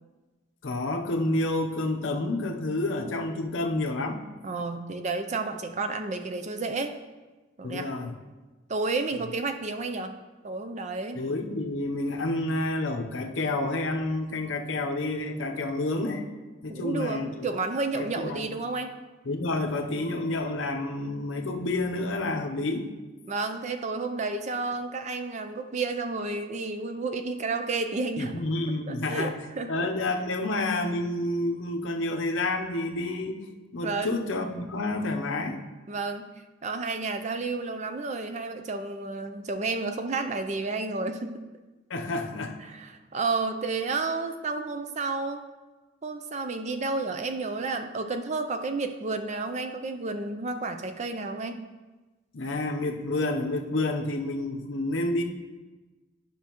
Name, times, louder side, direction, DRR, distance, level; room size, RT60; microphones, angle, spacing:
voice 1, 0.6-4.2 7.6-8.1 11.1-16.2 16.6-17.3 17.9-18.4 19.3-22.9 28.2-29.3 29.7-33.4 33.7-35.6 41.9-42.6 52.3-55.2, left 2 dB, 70° left, 4 dB, 0.8 m, -29 dB
voice 2, 4.4-6.9 7.6-7.9 8.7-10.1 10.4-11.2 16.7-18.9 23.3-28.3 28.9-29.7 33.8-34.2 35.9-36.3 36.6-41.4 42.6-45.4 46.0-51.6, right 3 dB, 35° right, 8 dB, 0.4 m, -31 dB
10.5 x 5.8 x 3.0 m, 1.2 s
head